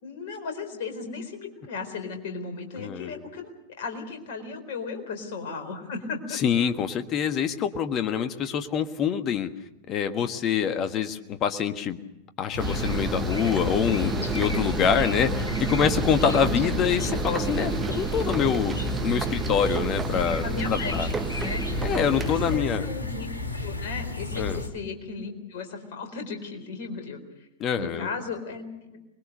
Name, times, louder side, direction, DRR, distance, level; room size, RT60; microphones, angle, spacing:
voice 1, 0.0-3.5 3.8-6.4 8.5-8.8 16.4-16.7 20.4-21.8 22.2-23.4 23.6-27.2 27.8-29.1, left 4 dB, 50° left, 5 dB, 4.2 m, -36 dB
voice 2, 2.8-3.1 6.3-9.5 9.9-12.0 12.4-18.7 19.0-20.4 20.7-21.1 21.8-22.9 24.4-24.6 27.6-28.1, left 7 dB, 35° left, 9 dB, 1.5 m, -25 dB
sound 1, 12.5-24.7, left 4 dB, 80° left, 2.3 m, -32 dB
sound 2, 12.6-22.6, right 5 dB, 15° right, 1.0 m, -31 dB
25.0 x 21.5 x 6.7 m, 0.91 s
figure-of-eight pair, 90°, 0 cm